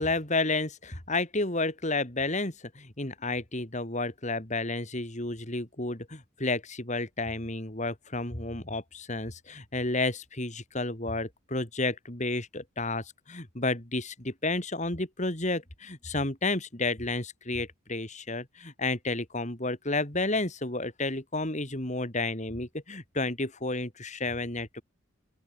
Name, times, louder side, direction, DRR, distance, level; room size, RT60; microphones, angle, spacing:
voice 1, 0.0-24.8, left 2 dB, 35° left, 3.7 m, -31 dB
open air
head